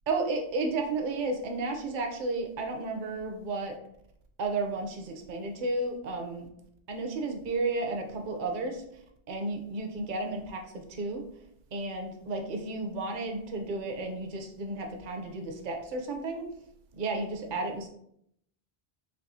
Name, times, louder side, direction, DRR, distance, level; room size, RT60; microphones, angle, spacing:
voice 1, 0.1-3.8 4.4-6.5 6.9-8.8 9.3-11.2 11.7-16.5 16.9-17.9, right 3 dB, 55° right, 3 dB, 0.8 m, -33 dB
4.7 x 3.1 x 2.6 m, 0.72 s
omnidirectional pair, 1.1 m